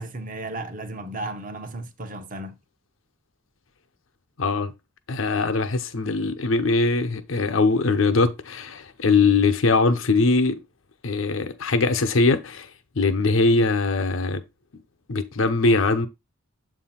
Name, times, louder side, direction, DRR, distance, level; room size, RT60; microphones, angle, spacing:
voice 1, 0.0-2.5, right 2 dB, 40° right, 0.8 m, -34 dB
voice 2, 4.4-4.7 5.1-10.6 11.0-12.7 13.0-14.4 15.1-16.1, left 3 dB, 80° left, 0.8 m, -21 dB
7.7 x 2.7 x 5.7 m
head